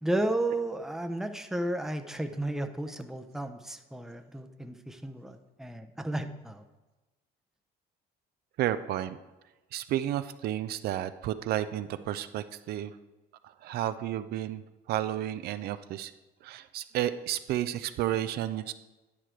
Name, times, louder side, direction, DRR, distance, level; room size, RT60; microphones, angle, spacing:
voice 1, 0.0-6.6, right 1 dB, 5° right, 7 dB, 0.6 m, -33 dB
voice 2, 8.6-9.2 9.7-12.9 13.4-14.6 14.9-16.1 16.4-18.7, right 12 dB, 70° right, 12 dB, 0.4 m, -32 dB
10.0 x 4.9 x 4.5 m, 1.1 s
cardioid pair, 110°, 17 cm